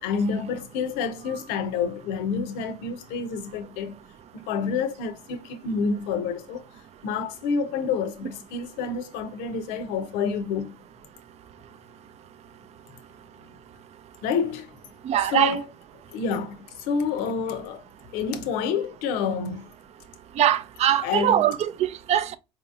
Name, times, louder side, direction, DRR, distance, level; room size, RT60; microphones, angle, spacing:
voice 1, 0.0-3.9 4.4-6.6 7.0-10.7 14.2-14.7 15.2-15.7 16.1-17.8 18.1-19.7 21.0-21.5, left 5 dB, 75° left, 0.7 m, -28 dB
voice 2, 15.0-15.6 20.4-22.4, right 11 dB, 45° right, 0.4 m, -22 dB
4.3 x 2.8 x 2.4 m
hypercardioid pair, 70°, 15 cm